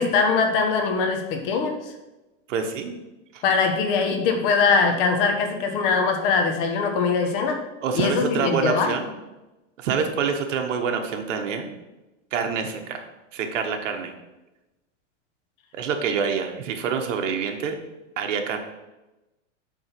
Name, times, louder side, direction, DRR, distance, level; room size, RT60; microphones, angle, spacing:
voice 1, 0.0-1.8 3.4-7.6 7.9-8.9, left 5 dB, 45° left, 5 dB, 1.3 m, -22 dB
voice 2, 2.5-2.9 3.3-3.4 7.8-9.1 9.8-11.7 12.3-13.0 13.3-14.1 15.7-17.8 18.2-18.6, right 6 dB, 70° right, 5 dB, 1.3 m, -26 dB
8.0 x 3.8 x 6.0 m, 1.0 s
supercardioid pair, 150°, 38 cm